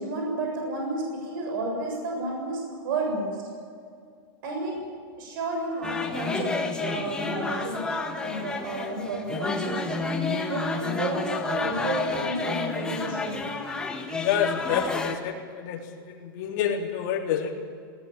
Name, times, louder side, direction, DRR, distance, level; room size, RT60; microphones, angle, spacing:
voice 1, 0.0-3.4 4.4-4.8 5.2-6.6 6.8-7.8 8.2-10.1 10.5-13.4, right 2 dB, 60° right, 1 dB, 7.4 m, -31 dB
sound 1, 5.8-15.2, left 3 dB, 5° left, 1.7 m, -30 dB
voice 2, 14.2-17.6, left 8 dB, 50° left, 0 dB, 3.7 m, -28 dB
19.0 x 18.5 x 9.1 m, 2.2 s
supercardioid pair, 155°, 12 cm